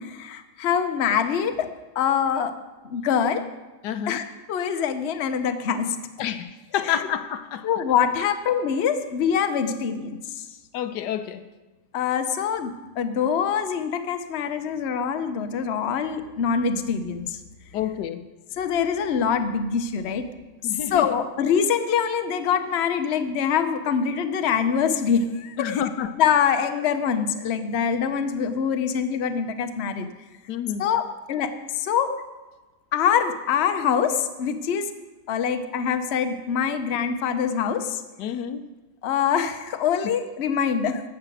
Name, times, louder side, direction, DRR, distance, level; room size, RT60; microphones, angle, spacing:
voice 1, 0.0-1.7 1.9-2.5 2.8-3.4 4.1-6.0 7.6-10.5 11.9-17.4 18.6-20.3 20.6-25.8 26.2-30.1 30.8-32.1 32.9-34.9 35.3-38.0 39.0-41.0, left 7 dB, 50° left, 8 dB, 0.9 m, -24 dB
voice 2, 3.8-4.2 6.2-7.7 10.7-11.5 17.7-18.3 20.6-21.1 25.6-26.2 30.5-30.9 38.2-38.7, left 9 dB, 80° left, 11 dB, 1.2 m, -29 dB
13.0 x 5.9 x 7.8 m, 1.2 s
omnidirectional pair, 1.8 m